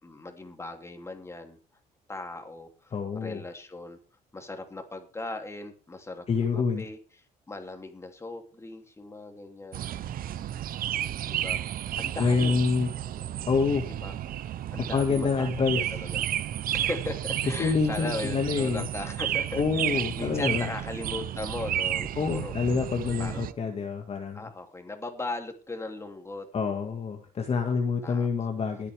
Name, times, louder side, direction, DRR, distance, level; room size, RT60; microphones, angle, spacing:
voice 1, 0.0-1.6 2.1-4.0 4.3-7.0 7.5-9.8 11.3-11.6 12.0-12.6 13.9-14.1 14.7-16.2 16.7-22.6 23.2-23.4 24.3-26.5 28.0-28.3, left 2 dB, 15° left, 4 dB, 2.9 m, -38 dB
voice 2, 2.9-3.4 6.3-6.8 12.2-12.9 13.5-13.9 14.8-15.8 17.6-18.8 19.6-20.7 22.2-24.4 26.5-28.9, left 5 dB, 35° left, 3 dB, 1.9 m, -27 dB
sound 1, 9.7-23.5, right 11 dB, 60° right, 0.8 m, -32 dB
21.5 x 8.4 x 3.5 m, 0.34 s
cardioid pair, 110°, 17 cm